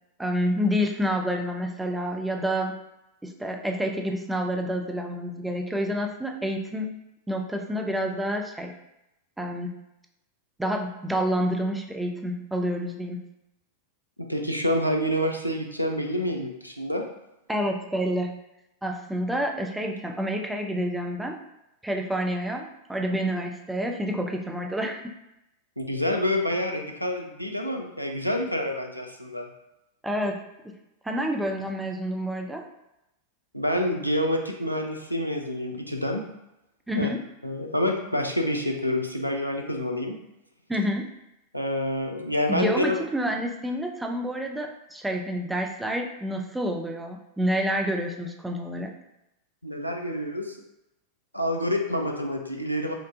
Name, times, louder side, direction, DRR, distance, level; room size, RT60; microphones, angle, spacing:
voice 1, 0.2-2.7 3.2-7.0 7.3-8.7 9.4-9.8 10.6-13.2 17.5-18.4 18.8-21.4 21.8-25.0 30.0-30.4 31.0-32.6 36.9-37.2 40.7-41.1 42.5-48.9, equal, 5° right, 2 dB, 0.4 m, -28 dB
voice 2, 14.2-17.0 25.8-29.5 33.5-36.2 37.0-37.1 37.4-40.2 41.5-43.0 49.6-50.6 51.3-52.9, left 1 dB, 90° left, 2 dB, 0.5 m, -27 dB
4.5 x 2.4 x 2.6 m, 0.88 s
figure-of-eight pair, 90°, 0 cm